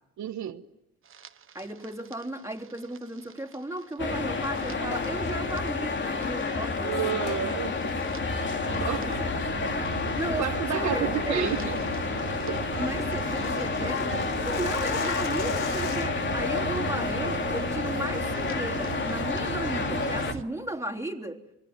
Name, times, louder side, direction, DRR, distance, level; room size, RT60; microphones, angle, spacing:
voice 1, 0.2-0.6 6.8-8.0 8.8-9.2 10.4-11.8 12.5-12.6, right 10 dB, 70° right, 1.4 m, -31 dB
sound 1, 1.1-20.4, right 8 dB, 45° right, 1.3 m, -38 dB
voice 2, 1.5-7.4 8.7-9.3 10.2-11.7 12.7-21.4, right 1 dB, 10° right, 3.4 m, -35 dB
sound 2, 4.0-20.3, left 4 dB, 40° left, 2.6 m, -30 dB
sound 3, 4.9-5.2 7.2-7.5 7.9-8.0 8.6-8.8 9.2-9.5 9.9-10.2 10.5-10.6 11.0-11.3 11.6-11.7 12.0-12.1 12.3-12.4 12.7-16.3, left 9 dB, 90° left, 2.1 m, -43 dB
27.0 x 23.5 x 9.6 m
cardioid pair, 90°, 30 cm